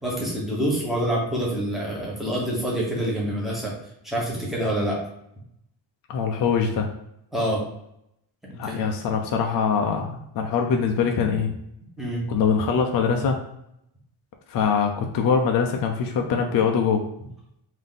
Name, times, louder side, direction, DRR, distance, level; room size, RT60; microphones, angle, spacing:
voice 1, 0.0-3.7 4.0-5.0 7.3-7.6 8.4-8.8 12.0-12.2, right 1 dB, ahead, -4 dB, 0.9 m, -26 dB
voice 2, 6.1-6.9 8.6-11.5 12.3-13.4 14.5-17.0, left 6 dB, 50° left, 3 dB, 0.4 m, -23 dB
3.5 x 2.7 x 3.7 m, 0.77 s
cardioid pair, 175°, 47 cm